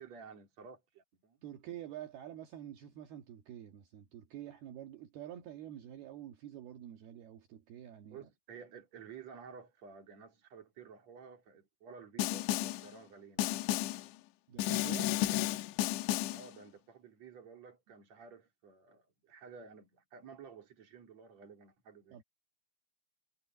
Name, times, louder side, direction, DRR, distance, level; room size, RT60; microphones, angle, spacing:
voice 1, 0.0-1.4 8.1-13.7 16.2-22.2, right 6 dB, 40° right, 4.4 m, -53 dB
voice 2, 1.4-8.3 14.5-15.2 22.1-22.2, right 11 dB, 65° right, 3.5 m, -47 dB
Snare drum, 12.2-12.9 13.4-14.1 14.6-16.5, left 15 dB, 85° left, 3.0 m, -33 dB
omnidirectional pair, 5.2 m